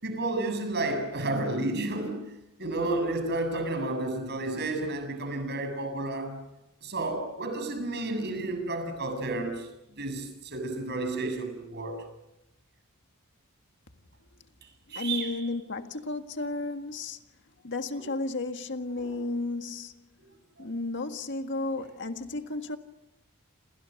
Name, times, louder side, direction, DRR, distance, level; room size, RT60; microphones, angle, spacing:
voice 1, 0.0-6.4 6.8-12.0 14.9-15.4 19.0-19.2 20.6-20.7, right 2 dB, 50° right, 7.5 m, -31 dB
voice 2, 14.9-17.2 17.6-19.9 20.6-22.8, left 2 dB, 55° left, 1.7 m, -33 dB
28.5 x 28.5 x 6.5 m
head